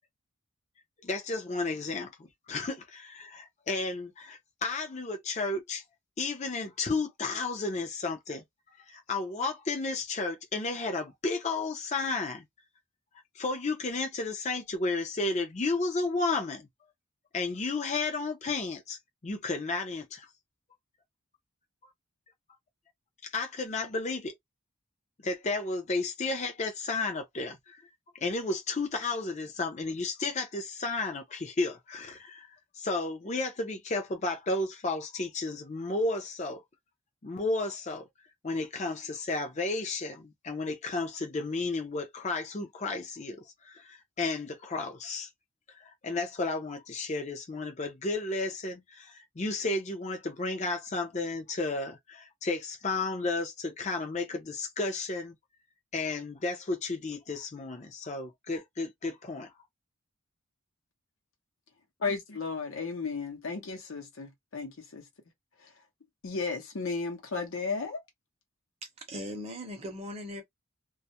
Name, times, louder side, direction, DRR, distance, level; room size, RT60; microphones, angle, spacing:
voice 1, 1.0-5.8 6.2-8.4 8.9-12.4 13.4-16.7 17.3-19.0 19.2-20.3 23.3-24.3 25.2-27.8 28.2-36.6 37.2-38.1 38.4-45.3 45.8-55.4 55.9-59.5, left 3 dB, 30° left, 0.5 m, -33 dB
voice 2, 62.0-65.0 65.6-65.7 66.2-68.0, left 4 dB, 75° left, 0.7 m, -34 dB
voice 3, 69.1-70.4, left 1 dB, 30° right, 0.7 m, -38 dB
2.3 x 2.0 x 2.7 m
head